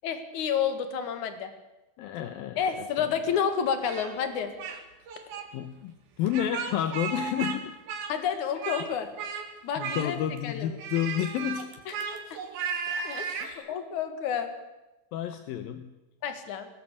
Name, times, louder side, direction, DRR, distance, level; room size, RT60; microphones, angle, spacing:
voice 1, 0.0-1.5 2.6-4.5 8.1-9.1 9.6-10.2 10.4-10.7 11.9-12.0 12.3-12.4 12.9-14.5 16.2-16.7, left 7 dB, 60° left, 9 dB, 3.0 m, -30 dB
voice 2, 2.0-3.1 5.5-7.8 9.8-11.7 13.4-13.7 15.1-15.9, left 10 dB, 80° left, 9 dB, 2.6 m, -31 dB
Speech, 3.8-4.8 5.1-5.5 6.3-7.6 7.9-8.9 9.2-9.5 9.8-10.4 10.8-13.5, right 6 dB, 75° right, 3.8 m, -35 dB
19.0 x 18.0 x 8.4 m, 1.0 s
omnidirectional pair, 4.3 m